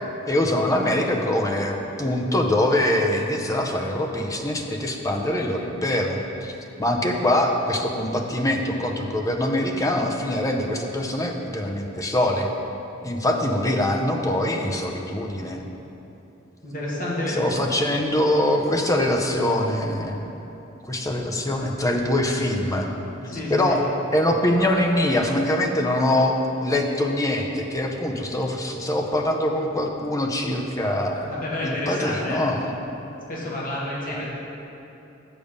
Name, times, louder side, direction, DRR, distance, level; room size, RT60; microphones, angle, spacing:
voice 1, 0.3-6.5 6.8-12.5 13.0-15.6 17.3-20.3 20.8-22.9 23.5-26.4 26.6-32.8 34.1-34.2, left 1 dB, 15° left, 2 dB, 0.6 m, -23 dB
voice 2, 16.6-17.7 23.2-23.8 31.2-32.4 33.3-34.3, left 1 dB, 45° left, -6 dB, 1.8 m, -29 dB
7.0 x 6.8 x 5.2 m, 3.0 s
head